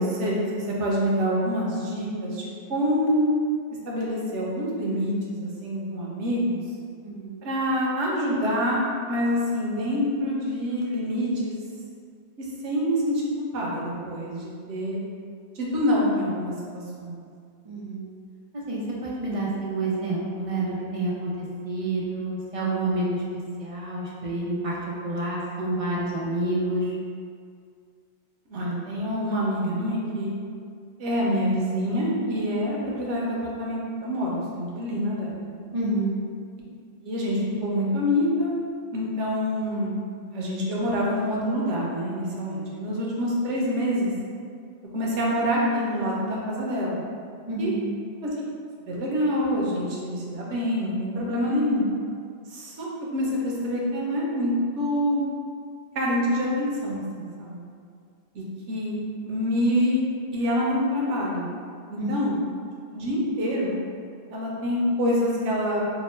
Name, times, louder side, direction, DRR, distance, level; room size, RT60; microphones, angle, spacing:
voice 1, 0.0-3.3 3.9-6.6 7.4-11.6 12.6-13.2 13.5-15.0 15.6-17.2 28.5-30.3 31.0-35.4 37.0-38.5 38.9-40.0 40.3-44.1 44.9-47.0 47.6-47.7 48.2-48.3 48.9-51.8 52.5-55.2 55.9-57.6 58.3-58.9 59.2-60.0 60.3-61.5 61.9-62.4 62.9-63.7 64.3-65.8, equal, 85° right, -4 dB, 1.0 m, -26 dB
voice 2, 7.0-7.4 17.6-18.0 18.5-21.3 21.6-24.7 25.0-26.9 35.7-36.2 47.5-47.8 62.0-62.1, right 2 dB, 40° right, -6 dB, 0.5 m, -28 dB
3.0 x 2.1 x 4.2 m, 2.2 s
omnidirectional pair, 1.2 m